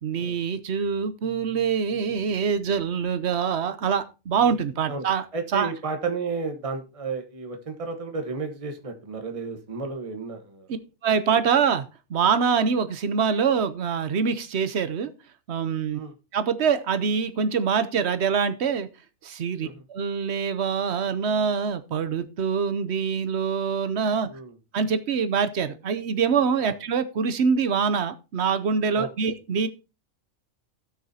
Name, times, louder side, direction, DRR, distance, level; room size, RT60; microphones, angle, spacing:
voice 1, 0.0-5.3 5.5-5.7 11.0-15.1 15.5-16.0 16.3-18.9 19.2-24.3 24.7-29.7, right 6 dB, 55° right, 12 dB, 1.0 m, -24 dB
voice 2, 5.3-10.7 15.9-16.1 19.6-19.8 24.3-24.5 26.6-26.7 28.9-29.3, right 4 dB, 25° right, 5 dB, 1.2 m, -32 dB
17.0 x 6.3 x 2.8 m, 0.30 s
omnidirectional pair, 1.5 m